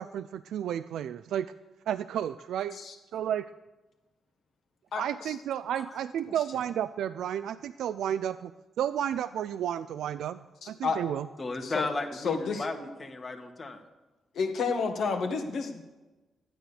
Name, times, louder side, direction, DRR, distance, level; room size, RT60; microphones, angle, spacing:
voice 1, 0.0-1.5 1.9-2.8 3.1-3.5 5.0-8.5 8.8-11.3, right 10 dB, 80° right, 12 dB, 0.3 m, -32 dB
voice 2, 4.9-5.3 10.6-11.0 11.6-11.9 12.2-12.6 14.3-15.8, left 5 dB, 70° left, 4 dB, 1.8 m, -30 dB
voice 3, 11.4-13.8, left 2 dB, 35° left, 5 dB, 1.8 m, -35 dB
12.5 x 9.1 x 6.9 m, 1.1 s
cardioid pair, 65°, 0 cm